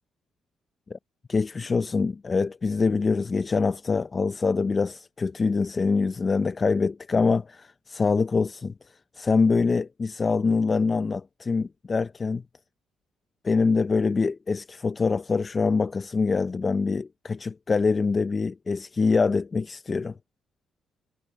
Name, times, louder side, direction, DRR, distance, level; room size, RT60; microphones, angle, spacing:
voice 1, 1.3-8.7 9.1-12.4 13.4-20.1, left 4 dB, 35° left, 0.5 m, -24 dB
cardioid pair, 90°, 0 cm